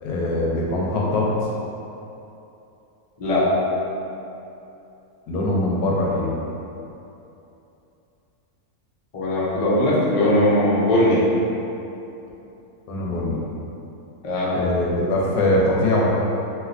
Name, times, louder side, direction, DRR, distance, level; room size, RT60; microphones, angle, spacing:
voice 1, 0.0-1.3 5.3-6.3 12.9-13.4 14.5-16.1, left 1 dB, 80° left, -4 dB, 1.1 m, -22 dB
voice 2, 9.1-11.2 14.2-14.6, left 1 dB, 60° left, -8 dB, 0.3 m, -19 dB
3.2 x 2.5 x 2.5 m, 2.8 s
omnidirectional pair, 1.6 m